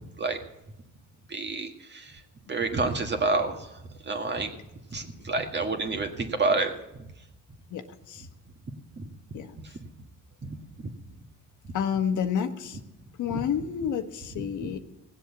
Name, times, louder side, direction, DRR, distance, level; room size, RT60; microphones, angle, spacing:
voice 1, 1.3-2.1 2.5-3.6 4.1-4.5 4.9-6.7 9.0-9.1 14.3-14.4, right 3 dB, 35° right, 4 dB, 1.8 m, -28 dB
voice 2, 11.7-12.8 13.2-14.8, left 8 dB, 80° left, 7 dB, 1.3 m, -29 dB
18.0 x 7.7 x 7.2 m, 0.91 s
cardioid pair, 90°, 30 cm